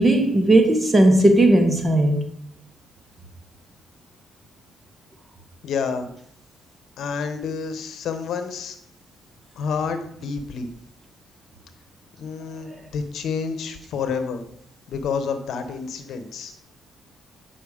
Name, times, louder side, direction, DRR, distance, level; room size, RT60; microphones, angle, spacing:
voice 1, 0.0-2.2 12.7-12.8, right 1 dB, 20° right, 1.6 m, -17 dB
voice 2, 5.6-6.1 7.0-8.8 9.6-10.7 12.2-14.4 14.9-16.5, left 5 dB, 70° left, 1.0 m, -29 dB
8.2 x 5.6 x 5.0 m
cardioid pair, 90°, 0 cm